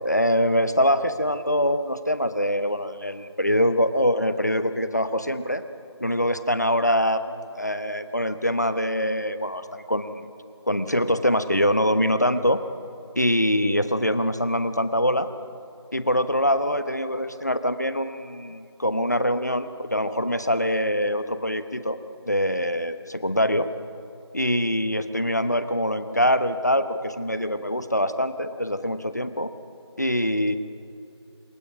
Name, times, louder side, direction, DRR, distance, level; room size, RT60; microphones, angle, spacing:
voice 1, 0.0-5.6 6.0-7.2 7.5-10.3 10.7-12.6 13.1-15.3 15.9-23.7 24.3-29.5 30.0-30.6, equal, 40° left, 11 dB, 0.9 m, -24 dB
27.5 x 16.0 x 6.1 m, 2.6 s
figure-of-eight pair, 180°, 14 cm